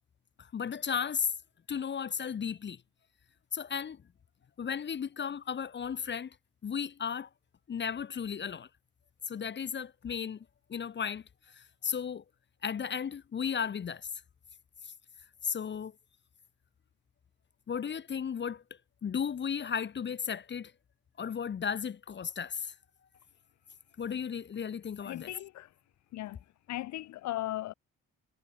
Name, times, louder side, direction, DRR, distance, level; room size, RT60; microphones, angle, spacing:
voice 1, 0.4-1.3 1.7-2.8 3.5-4.0 4.6-6.4 6.6-7.3 7.7-8.7 9.3-12.2 12.6-14.1 14.8-14.9 15.4-16.0 17.7-20.7 21.2-22.7 24.0-25.4, left 7 dB, 35° left, 0.9 m, -35 dB
voice 2, 25.0-25.7 26.1-26.4 26.7-27.7, left 15 dB, 65° left, 0.6 m, -37 dB
cardioid pair, 90°, 30 cm